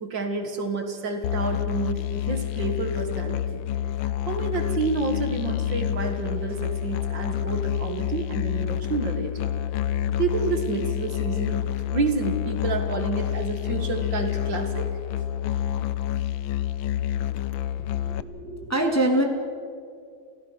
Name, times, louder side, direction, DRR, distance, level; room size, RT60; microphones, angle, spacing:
voice 1, 0.0-3.6 4.0-9.5 10.2-11.6 11.9-14.9, right 4 dB, 60° right, 5 dB, 2.4 m, -29 dB
Musical instrument, 1.2-18.2, left 11 dB, 75° left, 1.4 m, -28 dB
voice 2, 18.0-19.2, right 1 dB, 5° left, 1 dB, 2.1 m, -24 dB
29.5 x 16.0 x 6.2 m, 2.4 s
omnidirectional pair, 2.3 m